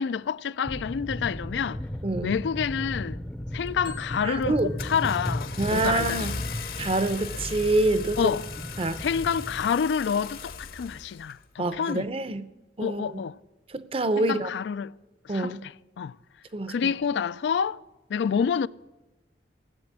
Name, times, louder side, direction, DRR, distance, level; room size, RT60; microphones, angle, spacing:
voice 1, 0.0-1.8 2.2-3.2 3.5-6.3 8.2-8.5 9.0-12.1 12.8-13.4 14.2-15.0 15.2-16.2 16.7-17.8 18.1-18.7, left 6 dB, 80° left, 0.4 m, -28 dB
sound 1, 0.6-9.7, left 1 dB, 5° left, 0.5 m, -36 dB
voice 2, 2.0-2.3 4.3-4.8 5.6-6.3 6.8-8.3 8.8-9.0 11.6-12.4 12.8-13.2 13.7-14.5 15.3-15.6 16.5-16.7, right 2 dB, 30° right, 0.6 m, -26 dB
Car / Engine starting, 3.6-4.0 4.4-11.4, left 5 dB, 55° left, 0.8 m, -38 dB
Marimba xylophone, 3.8-5.9, left 3 dB, 75° right, 1.9 m, -51 dB
17.0 x 7.8 x 7.3 m
head